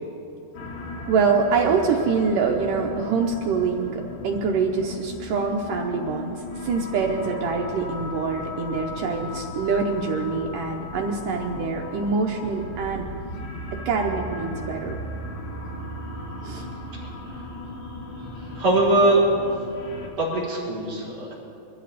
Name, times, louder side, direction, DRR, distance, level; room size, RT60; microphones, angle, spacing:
sound 1, 0.5-20.1, left 2 dB, 90° left, 3.8 m, -36 dB
voice 1, 1.1-3.9 4.2-13.1 13.9-15.0 16.4-16.6, right 5 dB, 80° right, 1 dB, 1.9 m, -25 dB
voice 2, 18.4-19.2 20.2-21.3, right 2 dB, 35° right, -6 dB, 4.3 m, -21 dB
23.0 x 14.0 x 4.1 m, 2.7 s
omnidirectional pair, 4.9 m